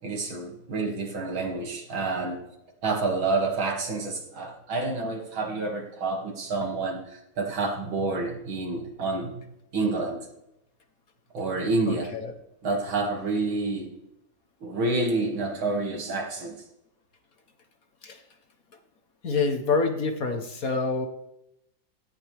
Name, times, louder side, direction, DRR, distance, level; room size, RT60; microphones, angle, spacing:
voice 1, 0.0-2.4 2.8-9.4 9.7-10.3 11.3-12.1 12.6-13.9 14.6-16.6, right 3 dB, 80° right, 1 dB, 3.3 m, -28 dB
voice 2, 11.9-12.3 18.0-18.2 19.2-21.1, left 4 dB, 50° left, 6 dB, 1.5 m, -27 dB
17.5 x 14.5 x 3.5 m, 0.85 s
omnidirectional pair, 2.2 m